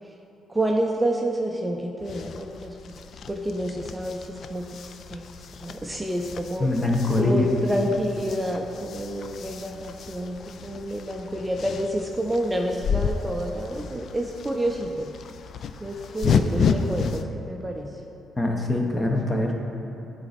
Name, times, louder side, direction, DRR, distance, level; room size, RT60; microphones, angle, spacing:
voice 1, 0.5-3.0 3.3-5.3 5.6-6.7 7.2-15.1 15.8-18.0, right 1 dB, 15° right, 1 dB, 0.5 m, -29 dB
sound 1, 2.0-17.2, left 6 dB, 60° left, 0.3 m, -32 dB
voice 2, 6.6-7.6 18.4-19.6, left 2 dB, 20° left, 1 dB, 1.0 m, -23 dB
9.7 x 4.1 x 4.2 m, 2.9 s
cardioid pair, 90°, 0 cm